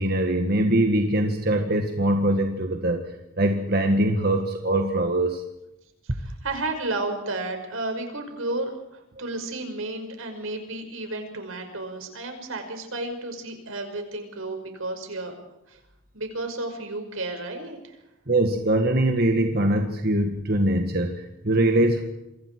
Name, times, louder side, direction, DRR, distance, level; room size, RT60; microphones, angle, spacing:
voice 1, 0.0-3.0 3.4-5.4 18.3-22.0, right 1 dB, 45° right, 4 dB, 1.8 m, -22 dB
voice 2, 6.1-15.3 15.7-15.8 16.1-18.0, right 2 dB, 80° right, 5 dB, 5.5 m, -32 dB
27.5 x 24.5 x 4.7 m, 0.91 s
head